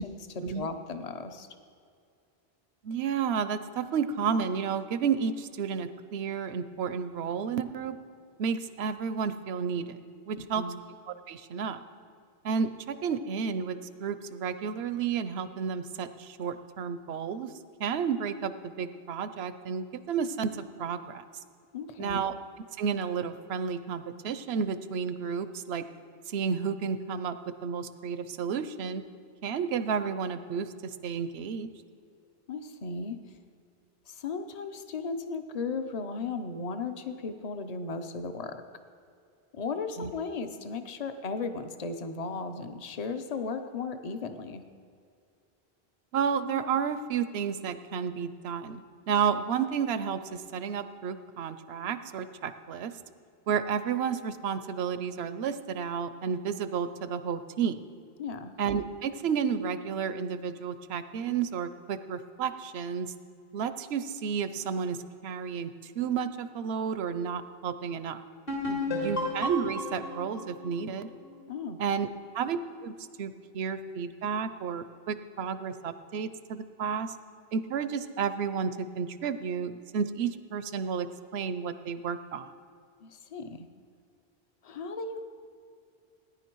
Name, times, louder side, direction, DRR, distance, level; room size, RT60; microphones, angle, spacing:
voice 1, 0.0-1.5 10.4-10.8 21.7-22.2 32.5-33.2 34.1-38.6 39.5-44.6 58.2-58.5 68.7-69.2 71.5-71.8 83.0-83.6 84.6-85.2, left 4 dB, 40° left, 8 dB, 0.8 m, -36 dB
voice 2, 2.8-8.0 8.4-10.0 10.3-10.6 11.1-11.8 12.4-17.5 17.8-21.2 22.0-22.3 22.8-25.8 26.3-27.4 27.6-29.1 29.4-31.7 40.0-40.1 46.1-52.9 53.5-57.8 58.6-63.1 63.5-68.2 68.9-71.1 71.8-72.1 72.3-72.6 72.8-72.9 73.2-77.1 77.5-81.1 81.3-82.5, right 6 dB, 85° right, 12 dB, 0.9 m, -31 dB
sound 1, 68.5-72.1, left 1 dB, 65° left, 2.7 m, -34 dB
17.5 x 10.5 x 4.6 m, 2.4 s
omnidirectional pair, 1.0 m